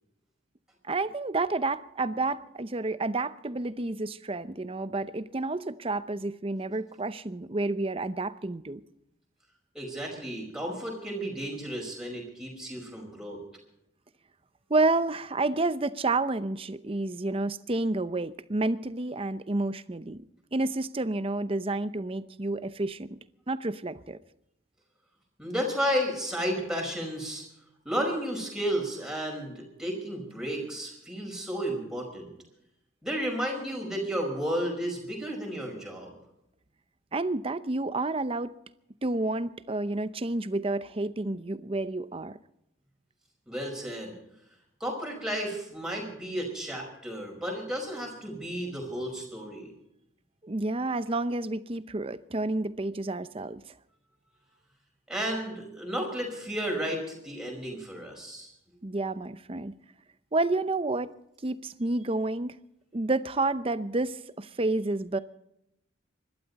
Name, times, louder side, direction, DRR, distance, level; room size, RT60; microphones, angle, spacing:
voice 1, 0.8-8.8 14.7-20.2 20.5-23.2 23.5-24.2 37.1-38.5 39.0-42.4 50.4-53.6 58.8-59.7 60.3-61.1 61.4-62.6 62.9-65.2, right 2 dB, 30° right, 0.7 m, -30 dB
voice 2, 9.7-13.4 25.4-27.5 27.9-32.3 33.0-36.1 43.5-44.2 44.8-49.7 55.1-58.5, equal, 5° right, 5.1 m, -33 dB
25.0 x 12.5 x 4.1 m
head